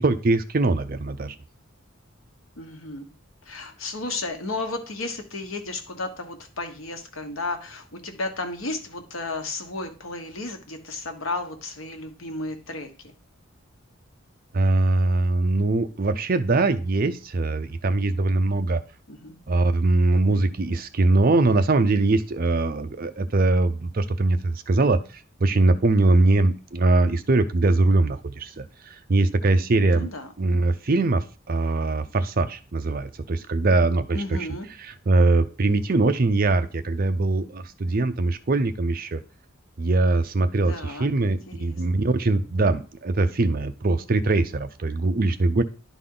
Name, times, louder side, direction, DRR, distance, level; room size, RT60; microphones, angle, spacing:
voice 1, 0.0-1.3 14.5-18.8 19.5-25.0 25.4-30.1 30.4-34.5 34.8-39.2 39.8-45.6, right 2 dB, 45° right, 10 dB, 0.6 m, -22 dB
voice 2, 2.6-3.1 3.5-13.1 19.1-19.4 26.1-26.4 29.8-30.3 34.1-34.7 40.7-42.0, left 2 dB, 90° left, 5 dB, 1.2 m, -33 dB
11.0 x 4.1 x 3.8 m, 0.36 s
head